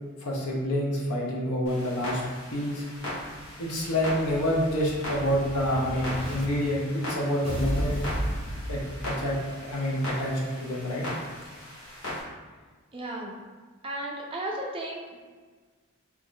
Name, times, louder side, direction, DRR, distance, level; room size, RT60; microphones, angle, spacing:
voice 1, 0.2-2.2 2.5-2.8 3.6-8.0 8.7-11.1, equal, 80° left, -2 dB, 0.8 m, -28 dB
Clock, 1.7-12.2, left 1 dB, 60° left, 1.3 m, -39 dB
Explosion, 3.3-6.4 7.4-9.5, equal, 30° left, 0.8 m, -34 dB
voice 2, 12.9-13.3 13.8-15.2, right 1 dB, 25° right, -1 dB, 0.4 m, -34 dB
2.9 x 2.5 x 3.7 m, 1.4 s
head